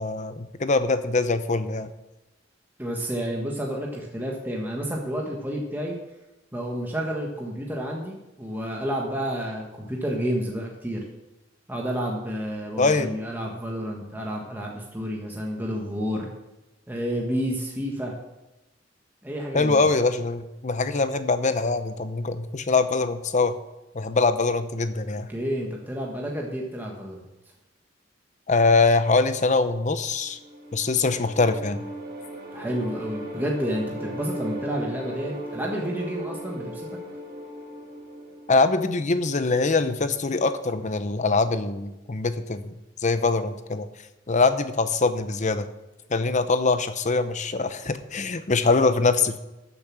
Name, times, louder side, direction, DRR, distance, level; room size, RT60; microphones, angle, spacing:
voice 1, 0.0-1.9 12.8-13.1 19.5-23.5 23.9-25.3 28.5-30.4 30.7-31.8 38.5-42.7 43.0-43.9 44.3-45.7 46.1-49.4, left 3 dB, 40° left, 10 dB, 0.8 m, -23 dB
voice 2, 2.8-5.9 6.5-11.0 11.7-16.3 16.9-18.1 19.2-19.8 25.3-27.2 32.5-36.9, equal, 10° right, -1 dB, 1.5 m, -30 dB
sound 1, 30.1-39.3, right 1 dB, 50° right, 1.8 m, -37 dB
13.5 x 7.0 x 6.2 m, 0.99 s
head